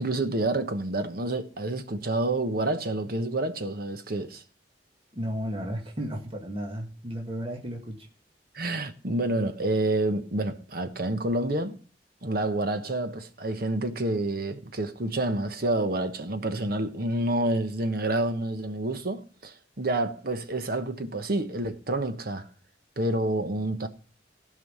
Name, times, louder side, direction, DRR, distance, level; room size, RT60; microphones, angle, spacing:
voice 1, 0.0-4.4 8.5-11.8 12.2-22.5 23.0-23.9, right 2 dB, 55° right, 1.2 m, -28 dB
voice 2, 5.1-8.1, equal, 30° right, 1.9 m, -34 dB
15.5 x 5.6 x 5.5 m
head